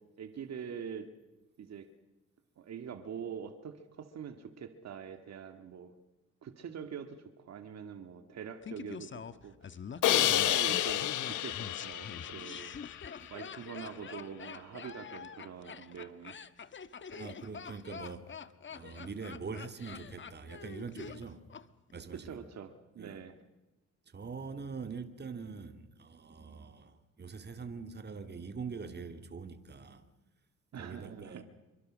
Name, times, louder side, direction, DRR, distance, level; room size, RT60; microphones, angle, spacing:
voice 1, 0.2-1.1 1.6-1.9 2.6-5.9 6.4-9.8 10.1-16.4 22.1-23.4 30.7-31.4, right 7 dB, 60° right, 2.1 m, -44 dB
Laughter, 8.6-21.6 21.9-22.0, left 6 dB, 40° left, 1.4 m, -45 dB
Crash cymbal, 10.0-13.1, left 13 dB, 85° left, 1.4 m, -30 dB
voice 2, 17.1-18.3 18.7-21.5 21.9-22.4 23.0-23.2 24.1-30.1 30.8-31.4, right 5 dB, 35° right, 2.4 m, -43 dB
27.5 x 24.0 x 6.4 m
cardioid pair, 90°, 30 cm